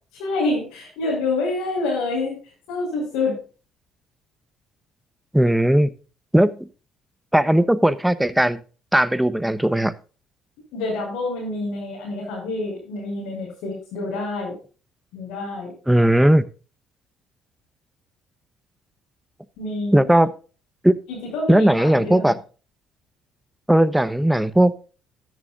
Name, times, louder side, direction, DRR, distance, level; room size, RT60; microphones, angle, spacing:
voice 1, 0.2-2.4 2.7-3.4 10.7-14.5 15.1-15.7 19.6-20.1 21.1-22.3, left 2 dB, 80° left, -6 dB, 6.6 m, -27 dB
voice 2, 5.3-5.9 6.3-6.7 7.3-8.6 8.9-9.9 15.9-16.5 19.9-20.3 20.8-21.0 21.5-22.4 23.7-24.7, right 1 dB, 5° right, 14 dB, 1.0 m, -17 dB
14.0 x 11.0 x 2.5 m, 0.35 s
supercardioid pair, 70°, 0 cm